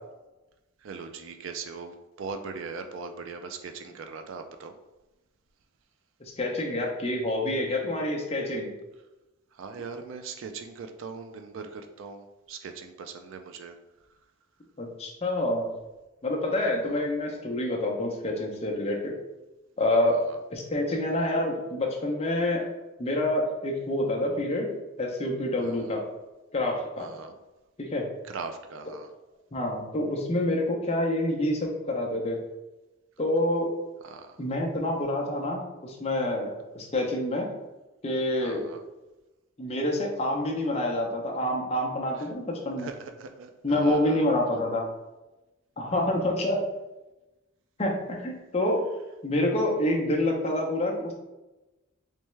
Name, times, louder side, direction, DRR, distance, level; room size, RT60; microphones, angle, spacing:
voice 1, 0.8-4.8 9.5-13.7 20.1-20.4 25.6-25.9 27.0-27.4 28.2-29.1 34.0-34.4 38.4-38.8 42.1-42.3 42.8-44.3, right 4 dB, 60° right, 6 dB, 0.3 m, -40 dB
voice 2, 6.4-8.7 14.8-15.7 16.2-19.1 19.8-20.2 20.5-22.6 23.0-24.7 25.0-26.0 26.5-27.1 27.8-28.1 29.5-32.4 33.2-33.7 34.4-37.5 38.0-38.6 39.6-42.9 43.6-44.9 45.8-46.6 47.8-48.8 49.2-51.1, left 1 dB, 30° left, 0 dB, 0.6 m, -27 dB
3.4 x 3.1 x 3.1 m, 1.0 s
head